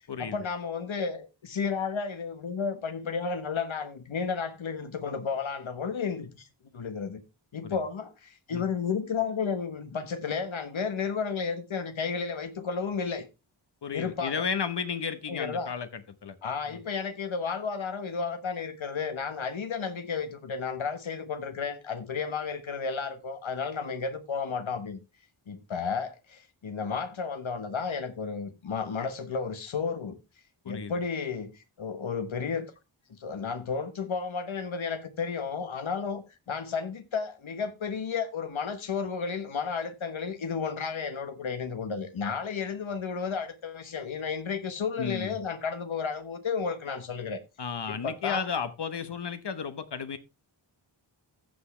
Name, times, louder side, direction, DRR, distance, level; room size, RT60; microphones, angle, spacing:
voice 1, 0.2-6.5 6.7-7.2 7.5-13.3 13.9-14.4 15.3-15.7 16.4-25.0 25.5-30.2 30.6-32.7 33.1-47.4 47.9-48.5, left 5 dB, 80° left, 1.4 m, -32 dB
voice 2, 13.8-16.4 16.7-16.8 30.6-30.9 45.0-45.3 47.6-50.2, left 6 dB, 60° left, 1.1 m, -33 dB
14.5 x 5.9 x 3.2 m
wide cardioid pair, 100°, 47 cm